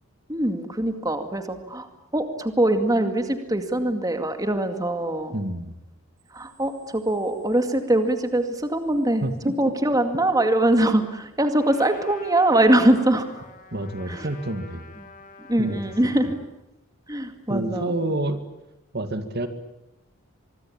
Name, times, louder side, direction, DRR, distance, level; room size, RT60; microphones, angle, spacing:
voice 1, 0.3-5.4 6.3-13.4 14.1-14.3 15.0-15.1 15.5-16.4 17.1-18.0, right 1 dB, 15° right, 7 dB, 2.2 m, -23 dB
voice 2, 5.3-5.7 9.2-9.5 13.7-14.8 15.6-15.8 17.5-18.4 18.9-19.5, right 1 dB, 50° right, 9 dB, 2.1 m, -28 dB
Trumpet, 11.6-16.5, left 4 dB, 40° left, 3.5 m, -46 dB
25.0 x 23.0 x 8.9 m, 0.92 s
head